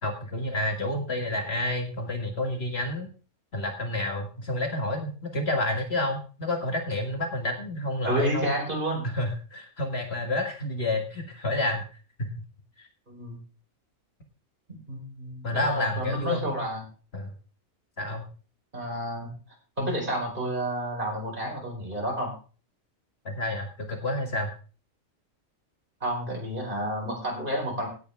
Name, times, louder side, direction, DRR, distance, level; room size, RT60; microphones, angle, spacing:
voice 1, 0.0-3.1 3.5-8.5 9.0-11.8 12.2-12.3 12.8-12.9 15.4-16.5 17.1-17.3 18.0-18.2 23.3-24.5, left 1 dB, 50° left, 3 dB, 2.0 m, -29 dB
voice 2, 8.1-9.1 13.1-13.4 14.9-16.8 18.7-19.3 19.8-22.3 26.0-27.9, right 1 dB, 40° right, -1 dB, 4.7 m, -30 dB
16.5 x 8.5 x 3.5 m, 0.37 s
omnidirectional pair, 1.4 m